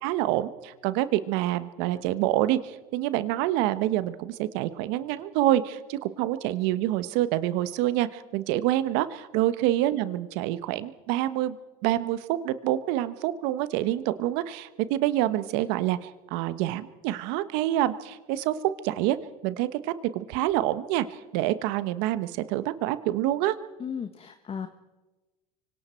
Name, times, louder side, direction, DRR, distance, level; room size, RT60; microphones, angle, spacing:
voice 1, 0.0-11.6 11.8-16.0 16.3-18.5 18.8-19.2 19.4-23.5, right 14 dB, 70° right, 13 dB, 1.3 m, -27 dB
voice 2, 23.8-24.7, left 7 dB, 30° left, 7 dB, 1.3 m, -35 dB
25.5 x 24.5 x 4.5 m, 1.2 s
hypercardioid pair, 90°, 19 cm